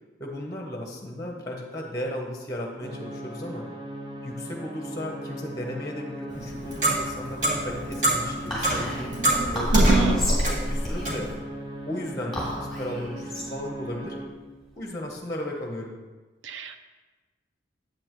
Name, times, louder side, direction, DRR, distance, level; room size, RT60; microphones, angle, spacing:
voice 1, 0.2-3.7 4.2-9.1 9.5-11.3 11.8-14.2 14.8-15.9, left 1 dB, 20° left, 1 dB, 0.9 m, -35 dB
sound 1, 2.8-14.3, right 1 dB, 25° right, 0.7 m, -38 dB
Clock, 6.3-11.3, right 1 dB, 40° right, 1.9 m, -24 dB
Whispering, 8.5-15.2, equal, ahead, 2.6 m, -35 dB
voice 2, 9.7-10.2 16.4-16.8, right 6 dB, 80° right, 9 dB, 0.5 m, -26 dB
8.8 x 8.0 x 3.0 m, 1.3 s
head